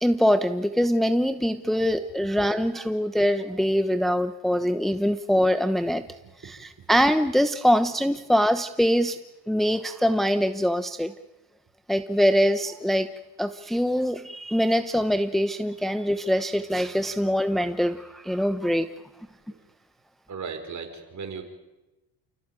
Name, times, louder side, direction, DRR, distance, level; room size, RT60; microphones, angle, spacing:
voice 1, 0.0-6.0 6.4-9.2 9.5-11.1 11.9-13.1 13.4-18.9, equal, ahead, 9 dB, 1.0 m, -23 dB
voice 2, 20.3-21.4, right 5 dB, 40° right, 5 dB, 5.4 m, -37 dB
29.0 x 16.0 x 9.0 m, 1.0 s
cardioid pair, 85°, 42 cm